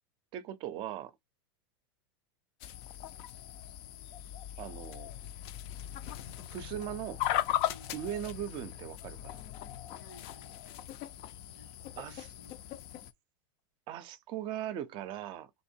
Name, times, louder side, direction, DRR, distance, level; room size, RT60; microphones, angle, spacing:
voice 1, 0.3-1.1 4.6-5.1 6.5-7.2 7.9-9.4 12.0-12.3 13.9-15.5, right 11 dB, 40° right, 0.5 m, -39 dB
sound 1, 2.6-13.1, left 12 dB, 50° left, 0.5 m, -38 dB
voice 2, 7.6-8.0 10.0-10.9 11.4-12.7, left 2 dB, 85° left, 1.8 m, -58 dB
3.0 x 2.7 x 4.3 m
supercardioid pair, 130°, 12 cm